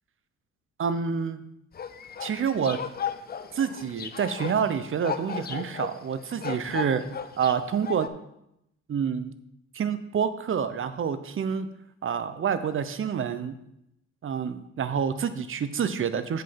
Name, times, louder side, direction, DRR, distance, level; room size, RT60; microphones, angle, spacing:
voice 1, 0.8-1.4 2.2-2.8 3.5-7.0 7.4-8.1 8.9-9.3 9.7-11.7 12.0-13.6 14.2-16.4, right 7 dB, 45° right, 12 dB, 0.8 m, -28 dB
sound 1, 1.7-8.1, left 7 dB, 30° left, 0.5 m, -36 dB
7.8 x 5.3 x 5.8 m, 0.80 s
cardioid pair, 90°, 30 cm